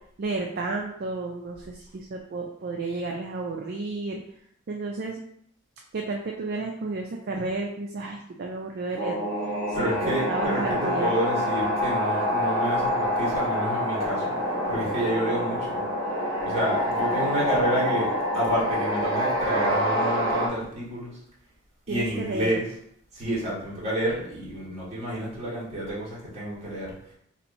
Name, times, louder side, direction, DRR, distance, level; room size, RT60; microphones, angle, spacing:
voice 1, 0.2-4.2 4.7-5.2 5.9-9.3 9.7-11.1 21.9-22.5, right 3 dB, 50° right, 0 dB, 0.4 m, -32 dB
sound 1, 9.0-20.5, equal, 65° right, 0.9 m, -26 dB
voice 2, 9.7-14.3 14.7-15.8 16.4-21.2 21.9-22.8 23.1-26.9, right 1 dB, 30° right, -7 dB, 1.5 m, -29 dB
2.9 x 2.6 x 4.1 m, 0.70 s
head